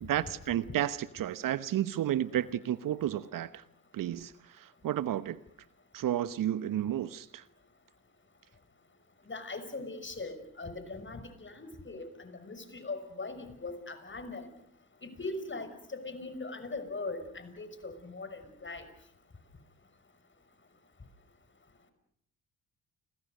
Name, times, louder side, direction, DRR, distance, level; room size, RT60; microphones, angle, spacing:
voice 1, 0.0-3.6 3.9-5.4 5.9-7.4, right 11 dB, 55° right, 16 dB, 1.0 m, -32 dB
voice 2, 9.3-14.5 15.0-18.9, left 3 dB, 30° left, 10 dB, 6.0 m, -40 dB
29.5 x 23.5 x 6.6 m, 0.72 s
hypercardioid pair, 50°, 39 cm